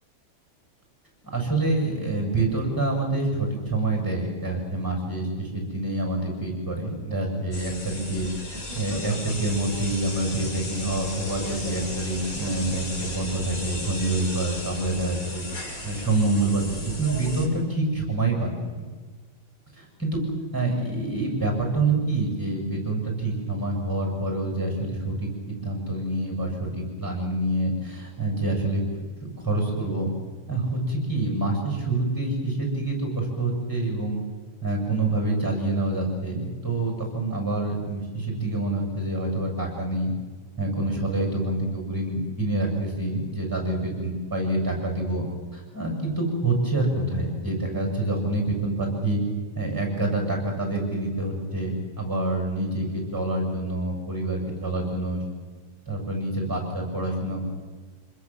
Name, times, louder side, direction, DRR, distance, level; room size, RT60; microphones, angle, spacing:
voice 1, 1.3-15.4 15.8-18.8 19.8-20.2 20.5-28.9 29.4-30.1 30.5-34.2 34.6-40.1 40.6-45.3 45.5-49.2 49.6-55.2 55.9-57.5, right 2 dB, 15° right, 2 dB, 7.4 m, -27 dB
sound 1, 7.5-17.5, left 1 dB, 90° left, 3.6 m, -35 dB
26.5 x 21.0 x 7.6 m, 1.4 s
omnidirectional pair, 1.4 m